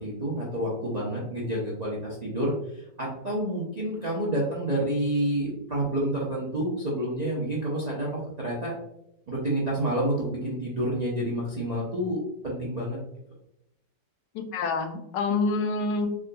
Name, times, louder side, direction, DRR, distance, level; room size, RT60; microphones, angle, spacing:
voice 1, 0.0-8.1 8.4-8.7 9.3-13.0, right 1 dB, 55° right, -6 dB, 0.4 m, -29 dB
voice 2, 14.3-16.1, left 3 dB, 85° left, 6 dB, 1.2 m, -27 dB
3.7 x 3.6 x 2.2 m, 0.84 s
omnidirectional pair, 1.8 m